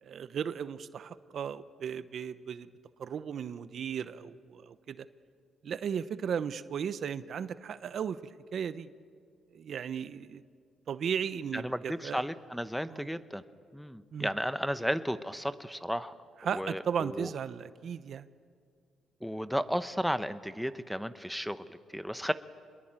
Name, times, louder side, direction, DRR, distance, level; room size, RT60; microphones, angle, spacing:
voice 1, 0.0-2.7 3.0-5.1 5.6-8.2 8.5-8.9 9.5-10.4 10.9-12.2 12.9-13.1 14.1-14.3 16.4-18.3, right 7 dB, 60° right, 13 dB, 0.9 m, -35 dB
voice 2, 11.5-13.4 13.7-16.1 16.5-17.3 19.2-22.3, equal, ahead, 10 dB, 1.0 m, -34 dB
26.5 x 21.5 x 8.9 m, 2.1 s
cardioid pair, 90°, 0 cm